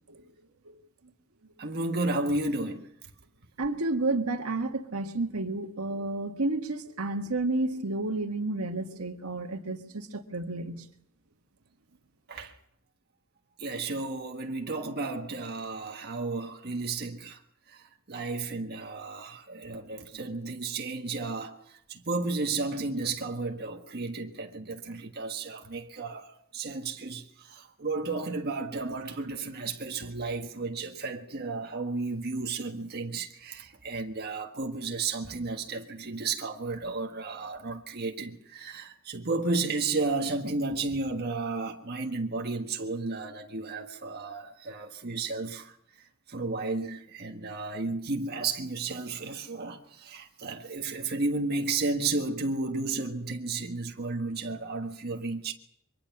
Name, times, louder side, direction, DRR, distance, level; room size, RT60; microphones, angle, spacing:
voice 1, 1.6-2.9 12.3-12.5 13.6-17.4 17.7-17.8 18.1-45.7 46.3-55.5, right 3 dB, 50° right, 1.5 m, -33 dB
voice 2, 3.6-10.8, right 2 dB, 90° right, 1.7 m, -31 dB
23.5 x 20.0 x 6.0 m
head